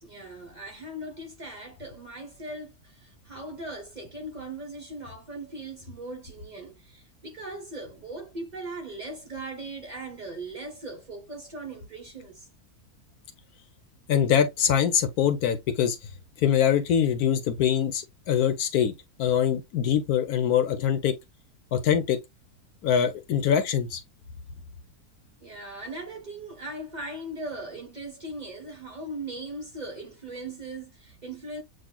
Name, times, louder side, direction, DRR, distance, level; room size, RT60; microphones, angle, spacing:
voice 1, 0.0-12.5 25.4-31.6, right 2 dB, 30° right, 1.1 m, -39 dB
voice 2, 14.1-16.1 16.4-21.1 21.7-22.2 22.8-24.0, left 8 dB, 70° left, 1.2 m, -24 dB
7.6 x 2.8 x 2.2 m
omnidirectional pair, 1.7 m